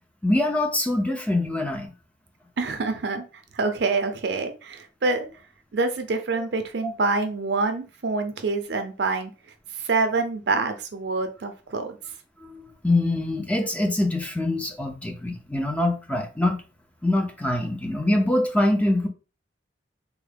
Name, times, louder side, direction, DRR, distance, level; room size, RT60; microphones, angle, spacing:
voice 1, 0.2-1.9 6.8-6.9 12.4-16.6 17.0-19.1, left 1 dB, 10° left, 0.5 m, -24 dB
voice 2, 2.6-3.3 3.5-5.3 5.7-9.3 9.8-12.0, right 3 dB, 65° right, 0.6 m, -26 dB
3.5 x 2.1 x 3.3 m
head